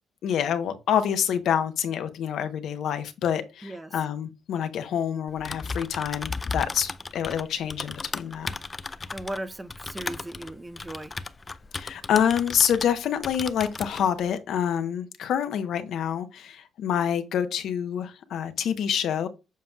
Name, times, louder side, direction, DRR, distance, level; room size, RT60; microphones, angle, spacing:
voice 1, 0.2-8.5 11.7-19.3, left 9 dB, 75° left, 0.8 m, -27 dB
voice 2, 3.6-4.0 9.1-11.1, right 1 dB, 15° right, 0.6 m, -37 dB
Typing, 5.3-13.0 13.2-14.1, left 3 dB, 25° left, 0.4 m, -35 dB
7.5 x 5.4 x 2.3 m
cardioid pair, 90°, 0 cm